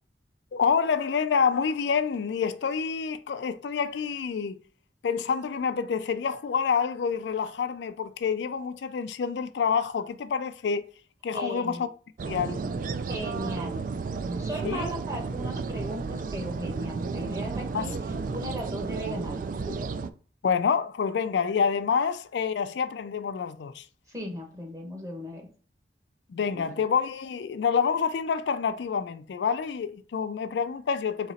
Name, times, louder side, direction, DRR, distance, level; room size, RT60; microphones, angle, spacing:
voice 1, 0.5-4.6 5.0-10.9 11.2-11.9 12.3-12.6 14.6-14.9 17.7-17.9 20.4-23.8 26.3-31.3, left 6 dB, 75° left, 0.4 m, -27 dB
voice 2, 11.3-11.8 12.9-13.8 14.3-19.4 19.7-19.8 24.1-25.5 26.5-26.6, equal, 20° right, 1.1 m, -37 dB
sound 1, 12.2-20.1, right 4 dB, 50° right, 0.3 m, -32 dB
4.0 x 2.9 x 4.1 m
head